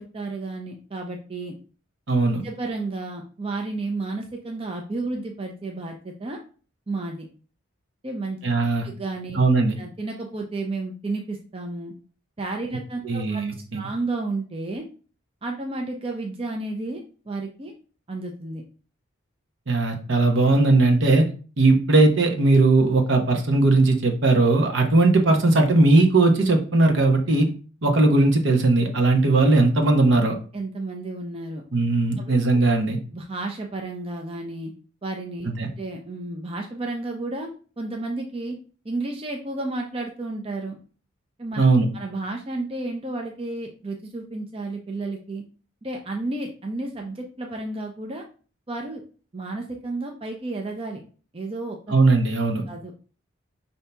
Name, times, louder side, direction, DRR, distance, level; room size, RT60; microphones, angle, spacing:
voice 1, 0.0-1.5 2.4-6.4 6.9-7.3 8.0-8.4 8.8-9.4 9.8-11.9 12.4-13.4 13.7-14.8 15.4-17.7 18.1-18.6 30.5-31.6 32.2-32.3 33.1-34.7 35.0-37.5 37.8-38.6 38.8-40.8 41.4-41.6 41.9-45.4 45.8-48.2 48.7-49.0 49.3-51.0 51.3-51.8 52.7-52.9, right 2 dB, 25° right, 2 dB, 0.5 m, -32 dB
voice 2, 2.1-2.4 8.4-8.9 9.3-9.8 13.0-13.8 19.7-21.3 21.6-27.5 27.8-30.4 31.7-33.0 35.4-35.7 41.6-41.9 51.9-52.6, right 2 dB, 70° right, 3 dB, 0.9 m, -19 dB
5.5 x 2.7 x 3.3 m, 0.39 s
head